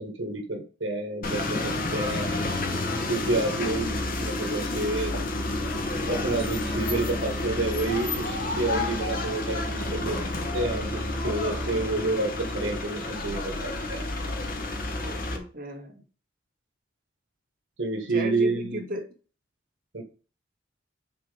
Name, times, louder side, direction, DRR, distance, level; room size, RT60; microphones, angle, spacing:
voice 1, 0.0-2.3 3.1-5.2 6.1-10.2 10.5-14.0 17.8-18.8 19.9-20.0, right 2 dB, 85° right, 3 dB, 1.5 m, -29 dB
sound 1, 1.2-15.4, left 2 dB, 50° left, 1.2 m, -30 dB
voice 2, 15.0-16.0 18.1-19.1, equal, 50° right, 0 dB, 1.7 m, -35 dB
6.1 x 3.8 x 5.0 m, 0.36 s
head